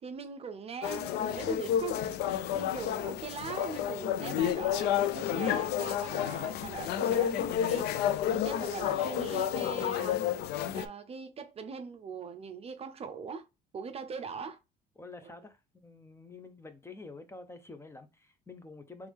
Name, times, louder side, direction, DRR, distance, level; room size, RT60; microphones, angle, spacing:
voice 1, 0.0-2.0 2.5-10.2 10.7-13.5 13.7-14.6 15.2-15.3, right 5 dB, 35° right, 0.5 m, -41 dB
sound 1, 0.8-10.9, left 10 dB, 85° left, 0.4 m, -30 dB
voice 2, 15.0-19.1, left 3 dB, 15° left, 0.6 m, -48 dB
3.4 x 3.1 x 3.5 m
cardioid pair, 110°, 17 cm